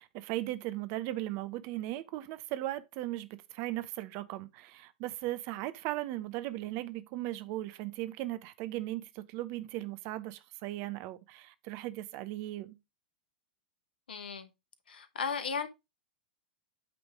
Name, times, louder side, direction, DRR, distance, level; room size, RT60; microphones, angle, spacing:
voice 1, 0.0-12.8, right 16 dB, 45° right, 0.8 m, -37 dB
voice 2, 14.1-14.5 14.9-15.7, left 5 dB, 75° left, 1.2 m, -35 dB
8.4 x 3.5 x 4.7 m
hypercardioid pair, 100°, 5 cm